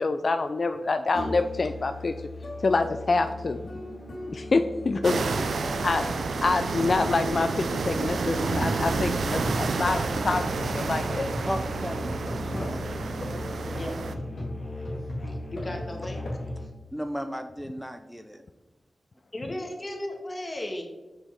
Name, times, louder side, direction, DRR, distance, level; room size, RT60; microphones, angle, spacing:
voice 1, 0.0-2.1 2.6-3.6 4.3-5.2 5.8-6.1 6.4-11.3, left 3 dB, 60° left, 8 dB, 0.3 m, -26 dB
Musical instrument, 1.1-16.6, left 1 dB, 75° left, 2.0 m, -36 dB
sound 1, 5.0-14.1, right 4 dB, 85° right, 0.4 m, -30 dB
voice 2, 5.1-5.4 12.4-12.8 13.7-14.0 15.3-16.2 16.6-16.7 19.3-20.8, left 1 dB, 35° left, 1 dB, 1.6 m, -36 dB
voice 3, 11.4-12.1 12.6-12.8 16.9-18.4, equal, ahead, 6 dB, 0.5 m, -34 dB
6.2 x 5.1 x 3.6 m, 1.1 s
cardioid pair, 45°, 0 cm